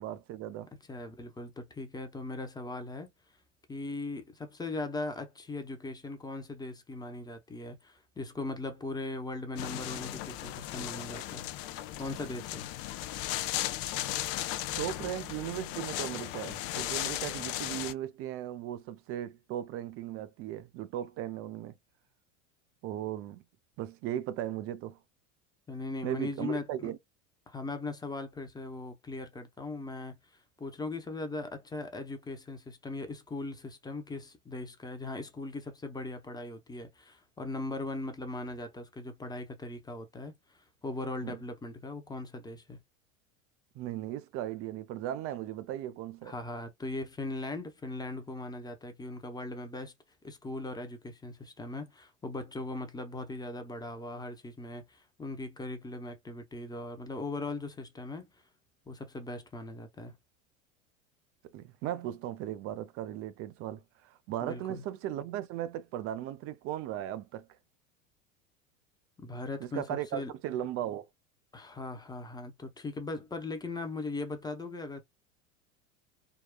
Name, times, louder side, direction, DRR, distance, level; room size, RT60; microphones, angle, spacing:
voice 1, 0.0-0.7 14.8-21.7 22.8-23.4 23.8-25.0 26.0-27.0 41.2-41.4 43.8-46.4 61.5-67.5 69.6-71.1, right 12 dB, 35° right, 0.4 m, -37 dB
voice 2, 0.9-3.1 3.7-11.5 12.0-12.7 25.7-26.9 27.5-30.2 30.6-42.8 46.2-49.9 50.2-58.3 58.9-60.2 64.4-64.8 69.2-70.3 71.5-75.0, left 2 dB, 10° left, 0.7 m, -39 dB
sound 1, 9.6-17.9, left 14 dB, 40° left, 0.4 m, -36 dB
3.7 x 2.2 x 2.2 m
hypercardioid pair, 85°, 40 cm